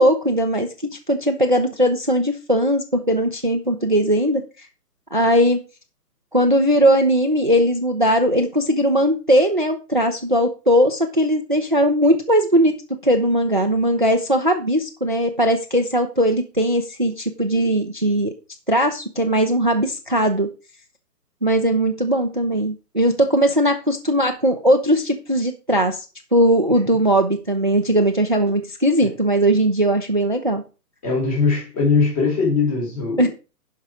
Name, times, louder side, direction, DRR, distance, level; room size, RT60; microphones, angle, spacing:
voice 1, 0.0-4.4 5.1-5.6 6.3-12.7 13.0-18.3 18.7-20.5 21.4-26.0 26.3-30.6 33.2-33.3, equal, 35° right, 7 dB, 0.4 m, -19 dB
voice 2, 31.0-33.3, left 4 dB, 20° left, -2 dB, 4.0 m, -20 dB
10.5 x 5.5 x 4.8 m, 0.32 s
hypercardioid pair, 175°, 48 cm